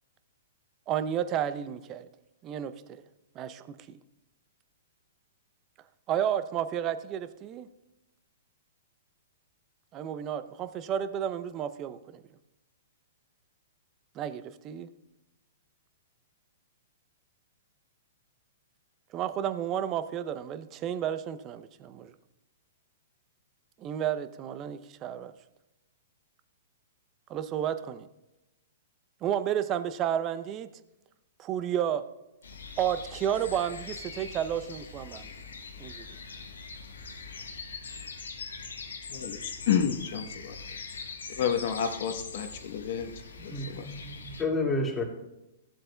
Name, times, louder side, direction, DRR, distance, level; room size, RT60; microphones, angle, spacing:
voice 1, 0.9-2.1 2.4-3.0 3.4-4.0 6.1-7.7 9.9-12.2 14.2-14.9 19.1-22.1 23.8-25.3 27.3-28.1 29.2-30.7 31.4-32.0 32.8-35.3 35.8-36.1, right 10 dB, 30° right, 0.6 m, -31 dB
sound 1, 32.4-44.4, left 4 dB, 85° left, 1.2 m, -42 dB
voice 2, 39.1-40.6 41.4-43.1 43.4-43.9, left 8 dB, 55° left, 1.0 m, -30 dB
voice 3, 43.4-45.0, left 2 dB, 15° left, 2.0 m, -31 dB
15.0 x 7.5 x 2.2 m
hypercardioid pair, 120°, 0 cm